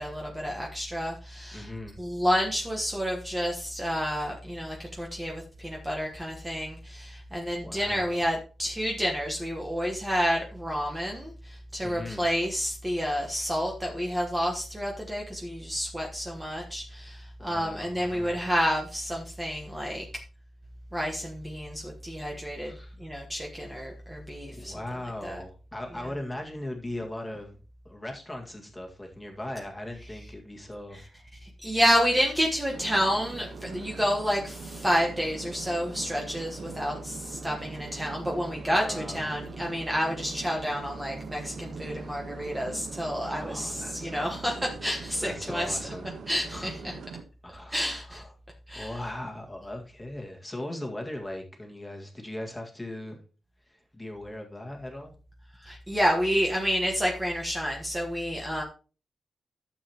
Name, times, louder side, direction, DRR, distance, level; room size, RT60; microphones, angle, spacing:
voice 1, 0.0-1.7 2.0-20.1 20.9-22.7 23.0-24.8 25.2-25.4 30.9-31.0 31.4-45.8 46.3-46.9 47.7-48.2 48.7-49.0 55.6-58.6, equal, 10° right, 1.3 m, -29 dB
voice 2, 1.5-2.0 7.6-8.2 11.8-12.3 17.4-18.4 22.6-22.9 24.5-27.6 27.9-31.0 38.8-39.2 41.9-42.2 43.3-44.7 45.2-46.1 46.5-46.7 47.4-48.3 48.7-53.2 53.7-55.1, left 1 dB, 10° left, 1.9 m, -39 dB
sound 1, 32.7-47.2, right 4 dB, 80° right, 1.2 m, -42 dB
12.5 x 7.2 x 3.0 m
wide cardioid pair, 135°, 0 cm